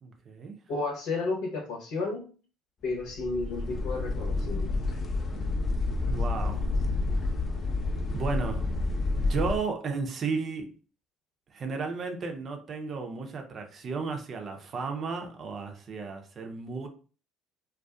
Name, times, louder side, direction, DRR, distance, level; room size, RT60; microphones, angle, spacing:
voice 1, 0.0-0.6 6.1-6.6 8.1-8.7 9.2-10.7 11.5-16.9, right 4 dB, 45° right, 0.6 m, -34 dB
voice 2, 0.7-2.2 2.8-4.8, left 3 dB, 65° left, 0.9 m, -32 dB
sound 1, 3.0-9.6, left 3 dB, 40° left, 0.6 m, -29 dB
2.5 x 2.3 x 2.3 m
hypercardioid pair, 60°, 0 cm